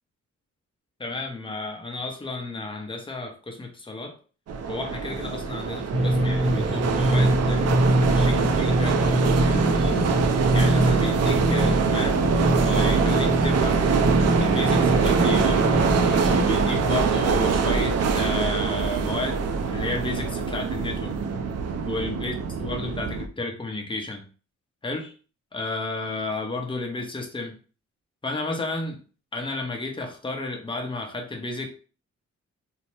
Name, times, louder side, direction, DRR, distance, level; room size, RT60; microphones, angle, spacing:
voice 1, 1.0-4.1 4.7-7.7 8.0-10.0 10.5-12.2 12.5-14.0 14.4-15.7 16.4-21.2 21.9-24.2 24.8-25.1 25.5-27.6 28.2-29.0 29.3-31.7, left 2 dB, 15° left, 3 dB, 0.7 m, -32 dB
sound 1, 4.5-23.3, right 5 dB, 55° right, 0.4 m, -24 dB
sound 2, 5.9-16.5, right 1 dB, 20° right, 0.8 m, -24 dB
2.8 x 2.1 x 3.1 m, 0.36 s
cardioid pair, 75°, 31 cm